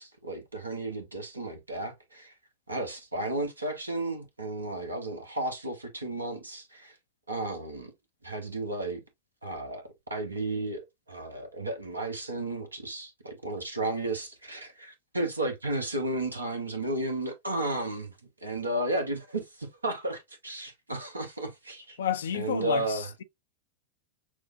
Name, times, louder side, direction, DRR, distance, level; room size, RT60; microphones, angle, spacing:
voice 1, 0.0-2.3 2.7-6.9 7.3-7.9 8.2-9.0 9.4-9.8 10.1-18.1 18.4-22.0 22.3-23.1, right 2 dB, 80° right, 1.1 m, -33 dB
voice 2, 22.0-23.2, left 9 dB, 65° left, 0.4 m, -31 dB
6.2 x 2.1 x 2.5 m
figure-of-eight pair, 90°, 0 cm